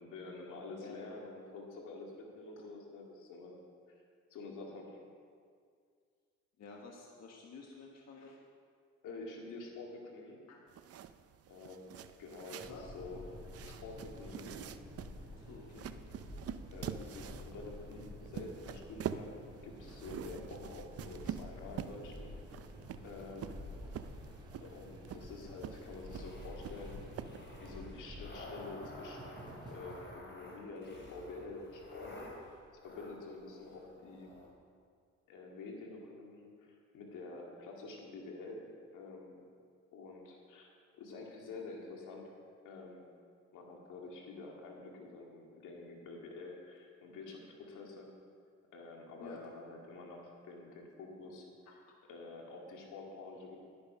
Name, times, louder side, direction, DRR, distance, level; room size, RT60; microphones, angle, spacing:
voice 1, 0.0-3.7 4.3-5.0 9.0-10.4 11.5-13.2 13.6-14.6 16.7-22.3 23.0-23.6 24.6-27.0 27.6-32.1 32.8-34.4 35.3-38.6 38.9-39.5 39.9-40.7 40.9-42.3 42.6-43.0 43.5-48.1 48.7-51.4 52.1-53.6, left 3 dB, 85° left, 0 dB, 2.2 m, -48 dB
voice 2, 6.6-8.4 10.5-10.6 12.7-12.8 13.7-13.8 15.3-15.9 49.2-49.4 51.7-51.8, left 4 dB, 60° left, 0 dB, 1.5 m, -51 dB
sound 1, 10.7-27.7, right 9 dB, 50° right, 0.5 m, -46 dB
sound 2, 12.6-30.2, equal, 15° right, 3.8 m, -50 dB
sound 3, 26.0-34.5, left 1 dB, 40° left, 3.5 m, -52 dB
11.5 x 10.0 x 5.5 m, 2.1 s
cardioid pair, 90°, 30 cm